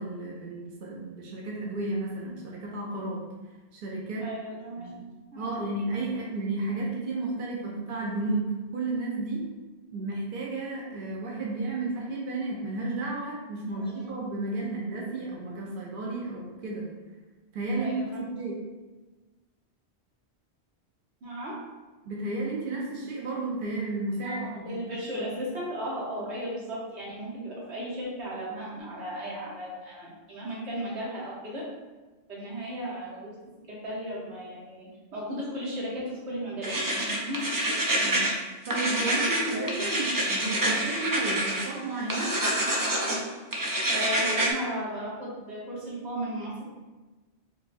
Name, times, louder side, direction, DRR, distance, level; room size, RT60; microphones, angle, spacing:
voice 1, 0.0-3.2 3.7-4.3 4.8-4.9 5.3-8.5 8.7-9.4 9.9-16.9 17.5-18.6 22.1-24.9 25.1-25.5 38.0-38.3 38.6-42.3, right 2 dB, 60° right, -3 dB, 0.8 m, -32 dB
voice 2, 4.2-5.0 5.3-5.7 13.8-14.1 17.7-18.0 21.2-21.6 24.2-31.7 32.3-33.3 33.7-37.4 39.5-39.9 43.9-46.6, equal, 80° right, -6 dB, 1.4 m, -35 dB
sound 1, 36.6-38.3 38.6-41.6 42.1-43.2 43.5-44.5, right 1 dB, 35° right, 0.3 m, -27 dB
5.0 x 2.3 x 2.6 m, 1.2 s
omnidirectional pair, 1.1 m